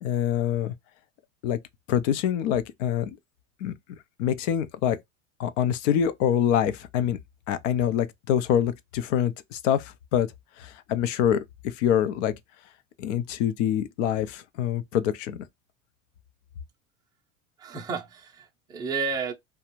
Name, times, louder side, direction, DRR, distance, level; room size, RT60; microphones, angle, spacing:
voice 1, 0.0-0.7 1.4-1.6 1.9-3.1 3.6-3.7 4.2-5.0 5.4-7.2 7.5-10.3 10.6-12.3 13.0-15.4, left 9 dB, 75° left, 0.6 m, -25 dB
voice 2, 17.6-19.3, right 5 dB, 10° right, 0.4 m, -31 dB
2.4 x 2.2 x 2.9 m
supercardioid pair, 125°, 37 cm